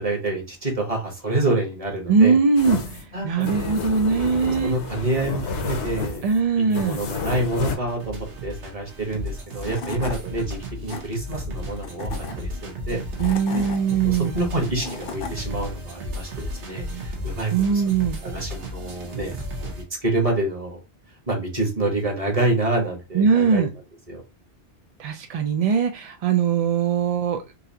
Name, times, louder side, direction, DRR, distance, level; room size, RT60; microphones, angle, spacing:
voice 1, 0.0-2.4 3.1-3.7 4.4-6.2 6.5-10.6 10.8-13.0 13.3-13.6 14.0-20.8 21.3-23.6 24.1-24.2, right 2 dB, 30° right, 1 dB, 1.2 m, -27 dB
voice 2, 2.1-2.8 3.2-4.7 6.2-7.0 13.2-14.3 17.5-18.2 23.1-23.7 25.0-27.4, right 5 dB, 60° right, 5 dB, 0.3 m, -20 dB
sound 1, 2.6-7.8, left 4 dB, 75° left, 1.1 m, -30 dB
sound 2, 7.8-19.8, equal, 80° right, 1.2 m, -34 dB
Tools / Wood, 9.3-9.4 9.6-10.2 10.7-11.0 11.8-12.3 13.0-13.8 14.5-15.3, left 5 dB, 55° left, 0.8 m, -34 dB
4.0 x 2.7 x 2.7 m, 0.28 s
omnidirectional pair, 1.2 m